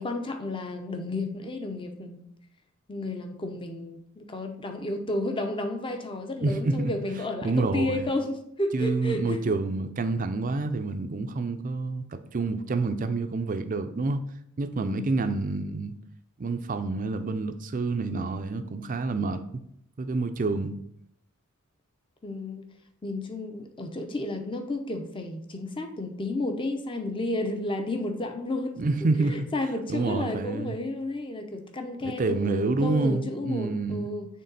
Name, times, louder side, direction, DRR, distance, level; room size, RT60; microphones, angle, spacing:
voice 1, 0.0-2.3 2.9-9.5 14.8-15.1 22.2-22.6 23.0-28.8 29.3-34.3, left 2 dB, 25° left, 0.6 m, -32 dB
voice 2, 6.4-6.9 7.4-8.1 8.7-14.2 14.6-15.9 16.4-19.6 20.0-20.8 28.8-29.5 29.9-30.8 32.0-34.1, right 3 dB, 40° right, 0.5 m, -28 dB
6.5 x 3.6 x 4.0 m
head